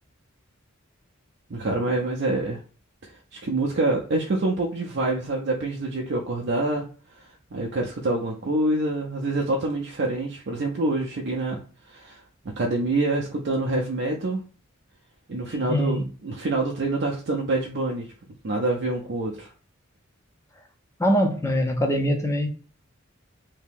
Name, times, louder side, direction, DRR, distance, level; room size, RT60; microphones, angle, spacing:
voice 1, 1.5-2.6 3.0-6.8 7.5-11.6 11.9-12.2 12.6-14.4 15.3-18.1 18.4-19.5, right 2 dB, 55° right, 0.5 m, -26 dB
voice 2, 15.5-16.0 21.0-22.5, equal, 15° left, 0.5 m, -23 dB
2.8 x 2.7 x 3.6 m
head